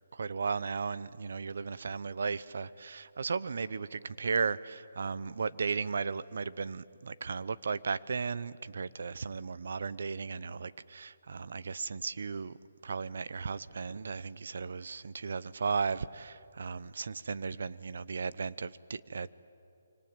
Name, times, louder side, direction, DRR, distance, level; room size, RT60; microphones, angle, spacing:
voice 1, 0.1-12.6 12.8-19.3, right 5 dB, 65° right, 17 dB, 0.8 m, -35 dB
25.5 x 25.0 x 9.0 m, 2.6 s
hypercardioid pair, 165°, 0 cm